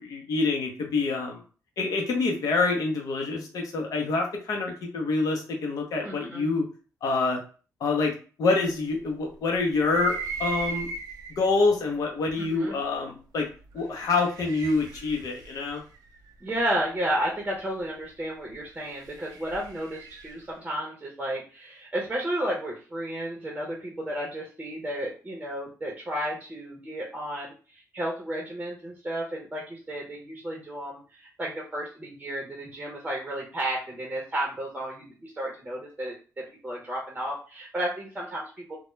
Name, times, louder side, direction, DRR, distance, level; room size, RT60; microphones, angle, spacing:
voice 1, 0.1-1.4 1.8-6.7 7.0-7.4 7.8-8.1 8.4-10.9 11.4-13.5 13.7-15.8, left 3 dB, 65° left, 1 dB, 0.6 m, -26 dB
voice 2, 6.0-6.5 12.4-12.7 16.4-38.8, right 1 dB, 20° right, -2 dB, 0.6 m, -32 dB
sound 1, 9.8-11.5 12.3-12.4 13.7-16.6 18.7-20.4, right 4 dB, 80° right, 0.4 m, -37 dB
2.2 x 2.0 x 3.0 m, 0.38 s
cardioid pair, 95°, 6 cm